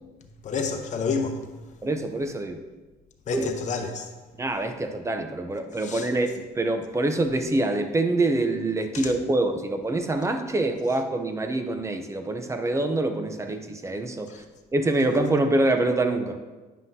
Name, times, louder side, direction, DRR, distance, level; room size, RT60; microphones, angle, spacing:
voice 1, 0.4-1.5 3.3-4.1 5.8-6.1 8.9-9.1 14.3-14.4, left 4 dB, 45° left, 0.9 m, -29 dB
voice 2, 1.8-2.6 3.3-3.5 4.4-14.3 14.7-16.4, right 2 dB, 15° right, 0.6 m, -25 dB
9.2 x 5.5 x 2.7 m
cardioid pair, 110°, 17 cm